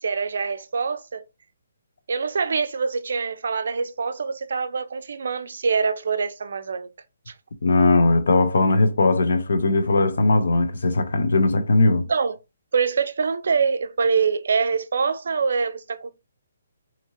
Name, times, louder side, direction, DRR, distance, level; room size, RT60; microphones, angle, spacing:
voice 1, 0.0-1.2 2.1-6.9 12.1-12.4 12.7-16.1, right 5 dB, 70° right, 0.4 m, -24 dB
voice 2, 7.6-12.1, left 2 dB, 75° left, 0.5 m, -19 dB
2.8 x 2.7 x 2.5 m
hypercardioid pair, 150°, 0 cm